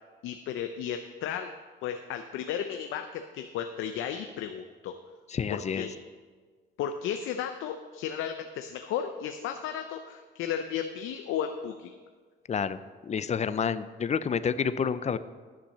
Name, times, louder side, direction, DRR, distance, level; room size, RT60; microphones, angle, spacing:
voice 1, 0.2-1.5 1.8-4.9 5.5-5.9 6.8-12.0, left 8 dB, 90° left, 7 dB, 0.6 m, -34 dB
voice 2, 5.3-5.9 12.5-12.8 13.0-15.2, left 6 dB, 35° left, 14 dB, 0.5 m, -29 dB
11.5 x 6.0 x 6.6 m, 1.5 s
cardioid pair, 90°, 20 cm